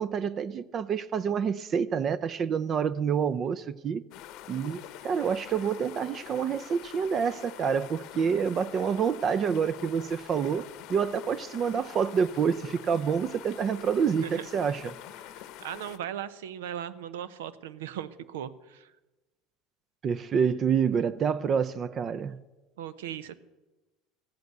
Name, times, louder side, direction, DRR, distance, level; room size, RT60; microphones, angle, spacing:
voice 1, 0.0-4.0 4.5-14.9 20.0-22.4, right 7 dB, 40° right, 0.6 m, -28 dB
sound 1, 4.1-16.0, left 12 dB, 60° left, 0.8 m, -45 dB
voice 2, 15.6-18.9 22.8-23.4, right 10 dB, 85° right, 0.7 m, -38 dB
13.5 x 7.9 x 8.1 m
hypercardioid pair, 90°, 0 cm